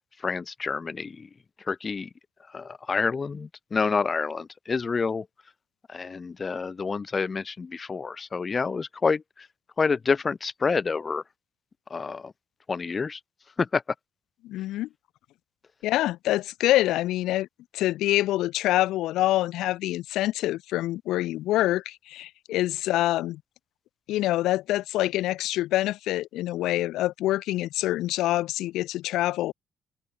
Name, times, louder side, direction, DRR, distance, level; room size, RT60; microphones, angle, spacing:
voice 1, 0.2-1.3 1.7-2.1 2.5-5.2 5.9-9.2 9.8-11.2 11.9-12.3 12.7-13.2 13.6-13.8, left 5 dB, 35° left, 0.8 m, -28 dB
voice 2, 14.4-14.9 15.8-17.5 17.7-23.4 24.1-29.5, left 15 dB, 90° left, 0.8 m, -26 dB
cardioid pair, 90°, 0 cm